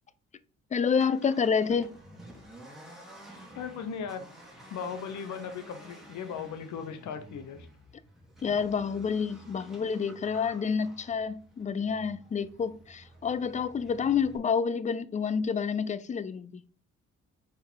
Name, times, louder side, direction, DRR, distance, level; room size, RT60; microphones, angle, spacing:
voice 1, 0.7-1.9 8.4-16.6, left 6 dB, 25° left, 0.5 m, -29 dB
Accelerating revving vroom, 0.8-14.4, equal, ahead, 2.1 m, -51 dB
voice 2, 3.5-4.3 4.7-7.7, left 6 dB, 70° left, 1.1 m, -37 dB
4.9 x 4.7 x 4.6 m
cardioid pair, 90°, 30 cm